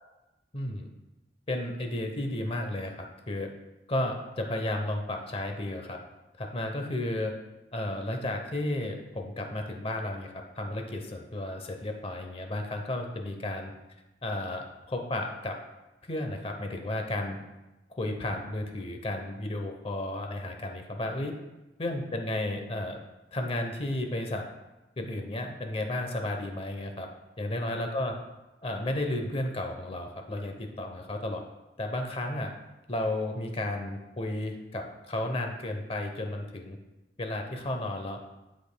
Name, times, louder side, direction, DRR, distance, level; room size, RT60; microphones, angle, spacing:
voice 1, 0.5-0.9 1.5-3.5 3.9-6.0 6.4-7.3 7.7-13.7 14.2-15.6 16.1-17.4 17.9-21.3 21.8-23.0 23.3-24.4 25.0-27.1 27.4-28.1 28.6-31.4 31.8-32.5 32.9-36.8 37.2-38.2, left 1 dB, 30° left, 4 dB, 0.8 m, -33 dB
13.5 x 5.2 x 2.2 m, 1.0 s
head